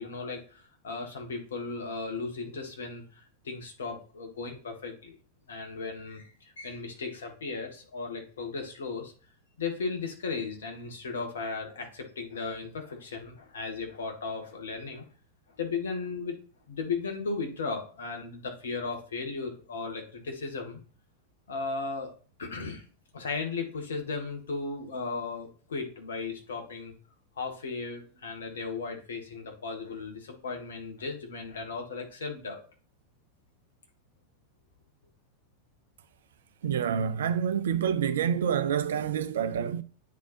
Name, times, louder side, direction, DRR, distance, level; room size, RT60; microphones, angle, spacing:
voice 1, 0.0-5.2 5.5-9.1 9.6-15.0 15.6-16.4 16.7-20.8 21.5-22.1 22.4-22.8 23.1-26.9 27.3-32.6, left 4 dB, 65° left, 1.5 m, -36 dB
voice 2, 36.6-39.8, right 8 dB, 60° right, 0.5 m, -27 dB
9.2 x 4.1 x 2.6 m
figure-of-eight pair, 90°, 0 cm